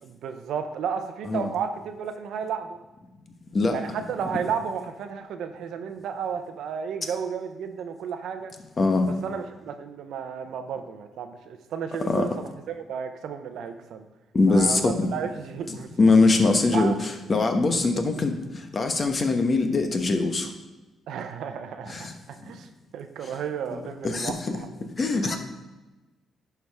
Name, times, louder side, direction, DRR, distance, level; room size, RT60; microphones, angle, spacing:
voice 1, 0.0-2.8 3.7-8.5 9.2-14.1 14.5-15.9 16.7-17.0 17.7-17.8 21.1-24.7, right 7 dB, 75° right, 7 dB, 0.7 m, -33 dB
voice 2, 8.8-9.1 12.1-12.3 14.3-15.1 15.7-20.5 21.9-22.1 23.2-23.4 23.7-25.4, left 3 dB, 35° left, 5 dB, 1.0 m, -23 dB
11.0 x 4.7 x 3.5 m, 1.1 s
cardioid pair, 90°, 0 cm